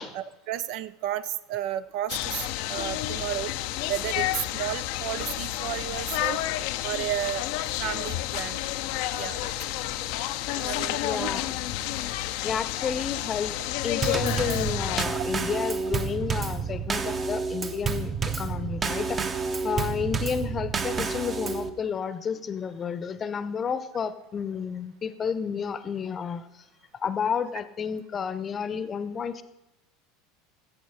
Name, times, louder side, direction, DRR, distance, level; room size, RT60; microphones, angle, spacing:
voice 1, 0.1-3.5 3.9-6.4 6.8-7.4 7.8-8.6 9.1-9.5 10.5-11.3 19.8-19.9, right 12 dB, 50° right, 14 dB, 0.5 m, -32 dB
sound 1, 2.1-15.1, left 14 dB, 55° left, 0.6 m, -30 dB
voice 2, 11.0-11.5 12.4-13.6 13.8-19.2 19.6-26.6 27.0-29.4, left 7 dB, 30° left, 13 dB, 0.9 m, -31 dB
Drum kit / Snare drum / Bass drum, 14.0-21.7, right 5 dB, 25° right, 0.9 m, -29 dB
14.5 x 8.4 x 5.0 m, 0.97 s
figure-of-eight pair, 75°, 0 cm